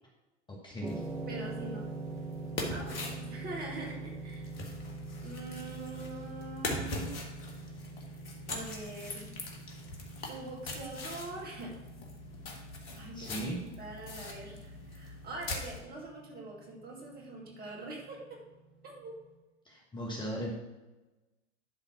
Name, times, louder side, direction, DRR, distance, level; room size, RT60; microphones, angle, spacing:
voice 1, 0.5-1.0 13.1-13.6 19.6-20.5, right 1 dB, 15° left, -3 dB, 1.5 m, -37 dB
sound 1, 0.8-19.1, right 3 dB, 5° right, 2.3 m, -45 dB
sound 2, 0.9-15.8, left 2 dB, 55° left, 1.9 m, -42 dB
voice 2, 1.3-1.9 2.5-4.5 5.2-7.1 8.5-9.4 10.3-11.7 12.9-18.4 18.8-19.1, right 2 dB, 25° right, -1 dB, 2.3 m, -43 dB
11.5 x 3.9 x 5.8 m, 1.1 s
figure-of-eight pair, 95°, 36 cm